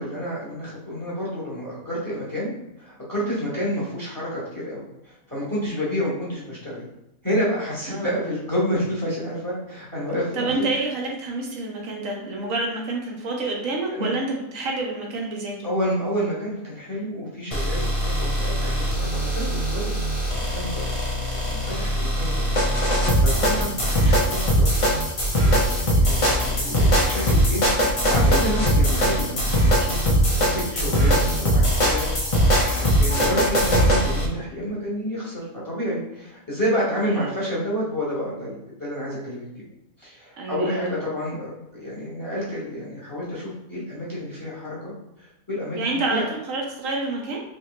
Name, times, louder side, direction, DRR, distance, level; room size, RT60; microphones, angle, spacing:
voice 1, 0.0-2.5 2.8-6.9 7.2-10.7 13.9-14.1 15.6-19.9 20.3-24.9 25.4-27.6 28.1-29.5 29.8-32.1 32.4-39.4 40.0-44.9 45.2-46.2, equal, 15° left, -7 dB, 1.1 m, -29 dB
voice 2, 10.3-14.3 14.5-15.7 23.3-23.6 37.1-37.3 40.4-40.9 45.8-47.4, right 2 dB, 75° right, 0 dB, 1.1 m, -28 dB
sound 1, 17.5-34.3, equal, 40° left, 0.4 m, -21 dB
3.2 x 2.9 x 3.1 m, 0.90 s
omnidirectional pair, 1.4 m